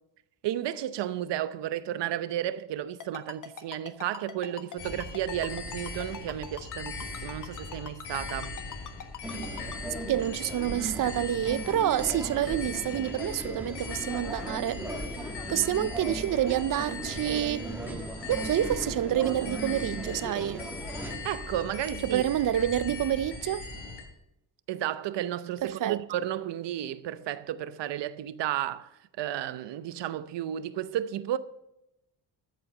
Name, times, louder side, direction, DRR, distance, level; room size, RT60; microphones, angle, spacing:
voice 1, 0.4-8.5 21.2-22.2 24.7-28.9 29.2-31.4, right 12 dB, 75° right, 0.8 m, -33 dB
Ringtone, 3.0-9.8, left 7 dB, 45° left, 1.4 m, -41 dB
sound 1, 4.8-24.0, left 4 dB, 70° left, 4.3 m, -40 dB
sound 2, 9.2-21.2, right 2 dB, 5° right, 1.6 m, -38 dB
voice 2, 10.1-14.9 15.5-17.7 18.3-20.7 22.0-23.7 25.6-26.0, right 11 dB, 50° right, 0.5 m, -28 dB
13.5 x 7.8 x 6.5 m
cardioid pair, 135°, 43 cm